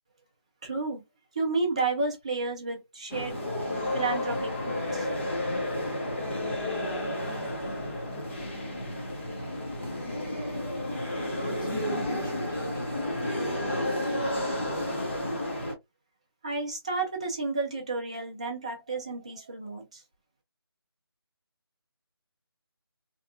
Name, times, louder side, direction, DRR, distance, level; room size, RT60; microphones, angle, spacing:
voice 1, 0.6-1.0 1.3-3.4 3.9-5.1 16.4-20.0, right 3 dB, 15° right, 0.4 m, -31 dB
sound 1, 3.1-15.7, left 1 dB, 30° left, 0.7 m, -31 dB
voice 2, 11.4-15.1, right 1 dB, 50° left, 1.3 m, -39 dB
2.8 x 2.3 x 2.3 m
figure-of-eight pair, 165°, 13 cm